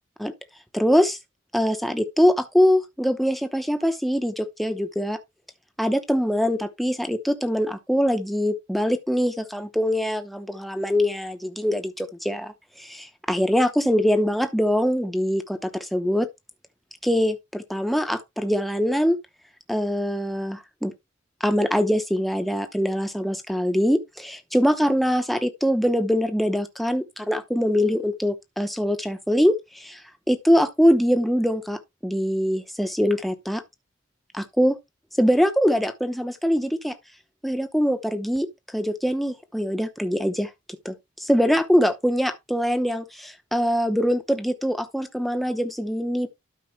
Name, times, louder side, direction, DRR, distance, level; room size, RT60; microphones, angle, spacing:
voice 1, 0.7-1.2 1.5-5.2 5.8-16.3 17.0-19.2 19.7-20.9 21.4-30.0 30.3-33.6 34.3-34.8 35.2-36.9 37.4-38.5 38.7-40.5 40.8-46.3, equal, ahead, 0.9 m, -23 dB
12.0 x 5.4 x 3.2 m
head